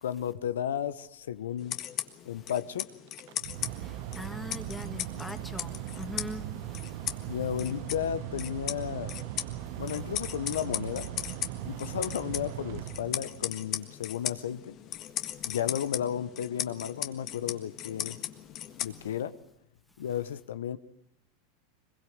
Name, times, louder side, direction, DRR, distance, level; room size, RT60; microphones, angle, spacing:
voice 1, 0.0-1.8 2.3-2.9 7.3-9.2 9.8-11.1 11.6-14.7 15.4-18.2 18.8-19.4 20.0-20.8, left 9 dB, 85° left, 0.8 m, -33 dB
sound 1, 1.6-19.4, left 12 dB, 45° left, 1.6 m, -38 dB
Mechanical fan, 3.1-13.6, right 14 dB, 65° right, 0.9 m, -39 dB
voice 2, 3.6-7.3, left 1 dB, 5° left, 2.2 m, -42 dB
22.5 x 22.0 x 7.9 m
hypercardioid pair, 105°, 0 cm